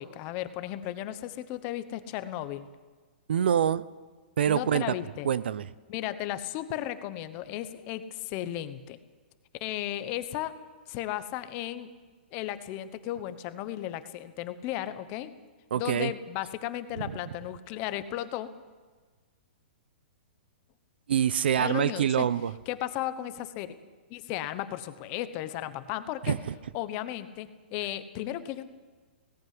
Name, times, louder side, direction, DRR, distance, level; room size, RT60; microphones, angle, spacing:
voice 1, 0.0-2.7 4.5-5.3 5.9-9.0 9.6-10.5 10.9-11.9 12.3-15.3 15.8-18.5 21.6-22.3 22.7-23.7 24.1-26.4 26.7-28.7, left 13 dB, 25° left, 12 dB, 1.0 m, -35 dB
voice 2, 3.3-3.8 4.4-4.9 5.2-5.7 15.7-16.1 21.1-22.5 26.2-26.5, right 9 dB, 70° right, 18 dB, 0.8 m, -25 dB
18.0 x 16.0 x 9.5 m, 1.4 s
hypercardioid pair, 170°, 6 cm